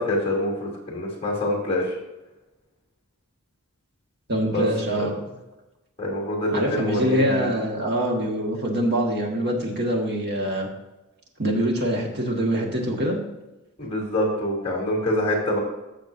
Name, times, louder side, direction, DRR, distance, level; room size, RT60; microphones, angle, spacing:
voice 1, 0.0-2.0 4.5-4.7 4.9-5.1 6.0-7.6 13.8-15.6, left 1 dB, 30° left, -3 dB, 3.0 m, -25 dB
voice 2, 4.3-5.1 6.5-10.7 11.4-13.2, right 1 dB, 50° right, 0 dB, 1.8 m, -24 dB
14.5 x 6.3 x 2.7 m, 1.0 s
head